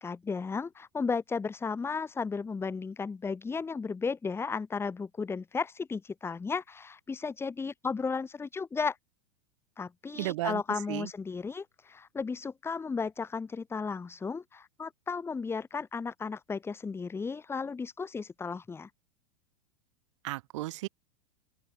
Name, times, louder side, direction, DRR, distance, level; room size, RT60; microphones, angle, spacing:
voice 1, 0.0-9.0 9.8-18.9, left 5 dB, 15° left, 1.2 m, -34 dB
voice 2, 10.1-10.6 10.9-11.1 20.2-20.9, right 18 dB, 60° right, 1.9 m, -34 dB
open air
hypercardioid pair, 90°, 17 cm